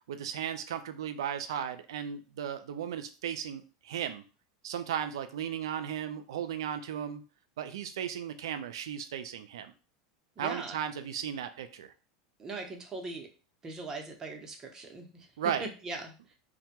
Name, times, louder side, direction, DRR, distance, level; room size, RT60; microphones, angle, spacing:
voice 1, 0.1-4.2 4.6-7.2 7.6-9.7 10.4-11.9 15.4-15.6, right 9 dB, 85° right, 9 dB, 0.3 m, -35 dB
voice 2, 10.4-10.7 12.4-13.3 13.6-15.3 15.8-16.3, right 3 dB, 25° right, 3 dB, 0.7 m, -40 dB
2.1 x 2.1 x 2.8 m, 0.34 s
hypercardioid pair, 105°, 2 cm